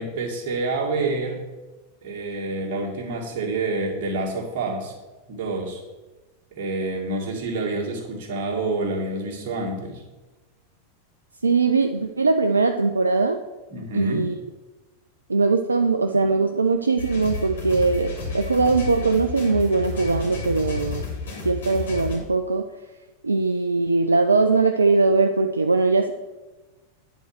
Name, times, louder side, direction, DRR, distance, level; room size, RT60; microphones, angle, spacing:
voice 1, 0.0-1.5 2.0-4.9 5.3-5.8 6.5-10.0 13.7-14.2, right 2 dB, 45° right, -2 dB, 2.2 m, -28 dB
voice 2, 11.4-13.4 13.9-14.4 15.3-21.0 21.4-22.7 23.2-26.1, right 3 dB, 80° right, 6 dB, 0.4 m, -21 dB
sound 1, 17.0-22.2, left 4 dB, 65° left, 2.9 m, -31 dB
9.2 x 4.4 x 6.4 m, 1.2 s
figure-of-eight pair, 90°, 0 cm